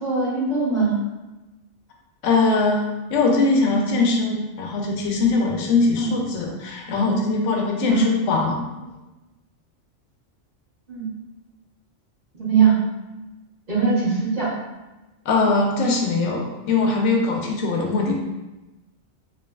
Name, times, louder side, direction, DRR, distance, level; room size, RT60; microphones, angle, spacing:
voice 1, 0.0-1.0 4.1-4.2 6.0-6.1 7.9-8.1 10.9-11.1 12.3-12.7 13.7-14.5, right 5 dB, 35° right, -11 dB, 1.3 m, -21 dB
voice 2, 2.2-8.6 15.3-18.1, left 3 dB, 85° left, 0 dB, 0.9 m, -21 dB
3.2 x 2.5 x 2.3 m, 1.1 s
omnidirectional pair, 1.2 m